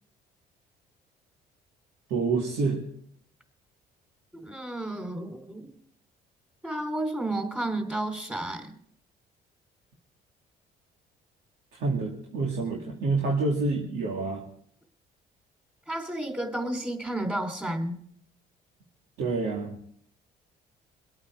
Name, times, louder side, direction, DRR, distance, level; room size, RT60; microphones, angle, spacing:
voice 1, 2.1-2.8 11.7-14.4 19.2-19.8, right 3 dB, 80° right, -1 dB, 2.4 m, -28 dB
voice 2, 4.3-5.7 6.6-8.7 15.9-18.0, right 1 dB, 10° right, 4 dB, 3.4 m, -32 dB
23.0 x 8.9 x 4.8 m, 0.63 s
cardioid pair, 110°, 17 cm